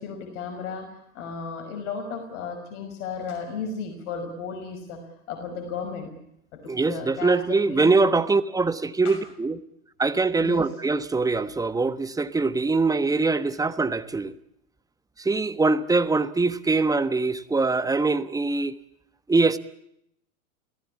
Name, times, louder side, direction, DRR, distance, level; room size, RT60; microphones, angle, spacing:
voice 1, 0.0-5.0 5.3-6.1 6.9-8.2 9.0-9.2 10.4-10.6, left 5 dB, 60° left, 5.9 m, -34 dB
voice 2, 6.7-9.6 10.0-14.3 15.2-18.8 19.3-19.6, right 3 dB, 10° right, 1.3 m, -23 dB
29.0 x 17.5 x 8.4 m
hypercardioid pair, 110°, 42 cm